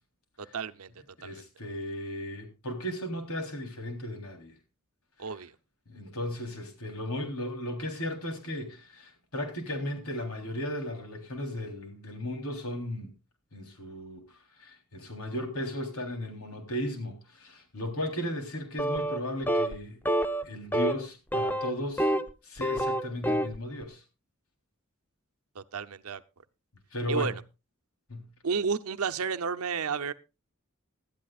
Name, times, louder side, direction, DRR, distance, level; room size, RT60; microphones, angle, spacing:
voice 1, 0.4-0.9 1.2-1.3 5.2-5.5 25.5-26.2 27.1-27.3 28.4-30.1, right 5 dB, 85° right, 0.7 m, -31 dB
voice 2, 1.2-4.5 5.2-5.3 5.9-13.1 13.5-20.0 20.4-22.1 22.4-24.0 26.9-27.3 28.1-28.3, left 1 dB, 85° left, 3.6 m, -36 dB
sound 1, 18.8-19.2 19.5-19.8 20.1-20.4 20.7-21.0 21.3-22.3 22.6-23.6, right 1 dB, 10° left, 0.7 m, -27 dB
19.0 x 12.0 x 2.4 m
head